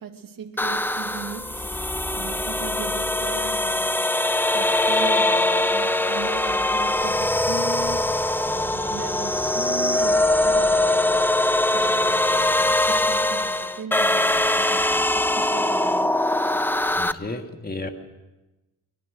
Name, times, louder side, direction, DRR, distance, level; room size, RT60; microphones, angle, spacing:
voice 1, 0.0-4.1 4.5-11.2 11.7-16.2 16.5-16.7, right 6 dB, 75° right, 2.1 m, -38 dB
sound 1, 0.6-17.1, left 1 dB, 5° left, 0.6 m, -22 dB
voice 2, 17.0-17.9, left 2 dB, 25° left, 2.0 m, -32 dB
23.5 x 21.0 x 6.3 m
wide cardioid pair, 115°, 34 cm